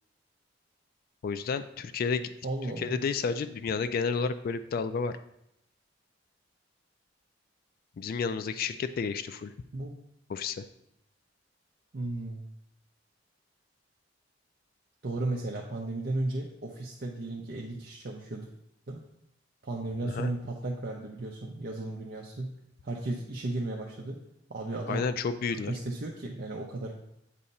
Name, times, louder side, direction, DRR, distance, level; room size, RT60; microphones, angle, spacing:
voice 1, 1.2-2.3 2.8-5.2 8.0-9.5 10.3-10.6 20.0-20.3 24.9-25.7, left 5 dB, 50° left, 10 dB, 0.3 m, -31 dB
voice 2, 2.4-3.0 9.7-9.9 11.9-12.4 15.0-18.5 18.9-19.0 19.6-22.5 22.8-24.2 24.5-25.0 25.7-26.9, right 2 dB, 55° right, -1 dB, 0.7 m, -34 dB
8.2 x 2.8 x 5.3 m, 0.79 s
head